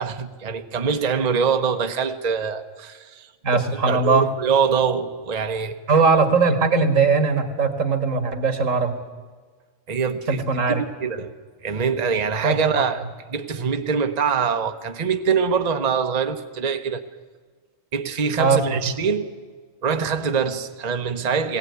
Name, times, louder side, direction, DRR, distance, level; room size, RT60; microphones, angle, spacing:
voice 1, 0.0-3.3 3.5-3.6 3.9-5.7 9.9-11.3 11.6-17.0 17.9-19.3 19.8-21.6, right 6 dB, 35° right, 1.0 m, -24 dB
voice 2, 3.4-4.3 5.9-9.0 10.3-10.8 12.4-12.7 18.4-18.8, right 4 dB, 80° right, 2.2 m, -20 dB
20.0 x 17.0 x 9.5 m
omnidirectional pair, 1.3 m